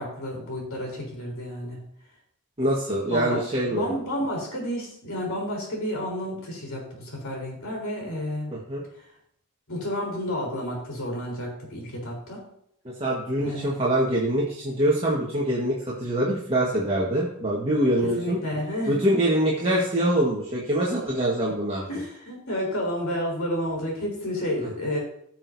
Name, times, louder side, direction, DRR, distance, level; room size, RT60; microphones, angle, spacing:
voice 1, 0.0-1.8 3.1-3.4 3.7-8.5 9.7-12.4 13.4-13.7 18.2-19.2 21.4-21.5 21.9-25.0, equal, 65° left, -1 dB, 3.9 m, -31 dB
voice 2, 2.6-3.9 8.5-8.8 13.0-18.4 18.9-21.8, right 1 dB, 25° right, -5 dB, 1.5 m, -24 dB
16.0 x 6.1 x 2.7 m, 0.73 s
head